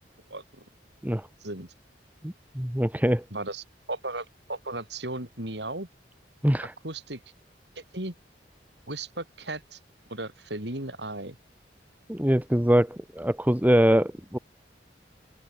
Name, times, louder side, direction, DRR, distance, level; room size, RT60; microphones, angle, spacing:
voice 1, 0.3-0.7 1.4-1.7 3.3-5.9 6.8-7.2 7.8-8.1 8.9-9.8 10.1-11.4, right 2 dB, 70° right, 7.0 m, -36 dB
voice 2, 2.2-3.2 6.4-6.7 12.1-14.4, equal, 10° right, 2.0 m, -23 dB
open air
head